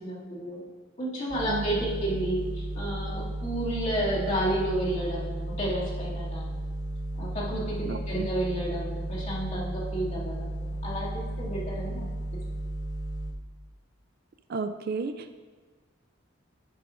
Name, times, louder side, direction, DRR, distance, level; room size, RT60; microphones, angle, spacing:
voice 1, 0.0-0.7 1.0-6.6 7.2-12.1, right 1 dB, 35° left, -7 dB, 2.4 m, -31 dB
sound 1, 1.3-13.3, right 1 dB, 80° right, 1.3 m, -34 dB
voice 2, 7.9-8.3 14.5-15.4, right 4 dB, 50° right, 9 dB, 0.4 m, -33 dB
10.0 x 9.6 x 2.6 m, 1.5 s
head